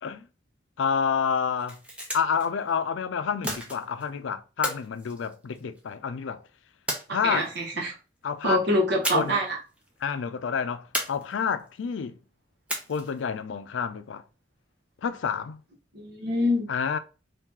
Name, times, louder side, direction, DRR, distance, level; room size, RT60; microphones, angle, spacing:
voice 1, 0.8-1.8 2.1-6.4 7.1-7.5 8.2-8.8 9.1-9.4 10.0-12.2 12.9-14.2 15.0-15.6 16.7-17.0, left 6 dB, 90° left, 0.4 m, -29 dB
sound 1, 1.5-2.5 3.4-4.1 4.6-5.9 6.9-7.6 9.0-9.5 9.8-9.9 10.9-11.7 12.7-13.2, equal, 5° right, 0.7 m, -34 dB
voice 2, 7.1-7.9 8.4-9.6 15.9-16.7, equal, 65° right, 1.2 m, -25 dB
2.9 x 2.7 x 3.6 m
head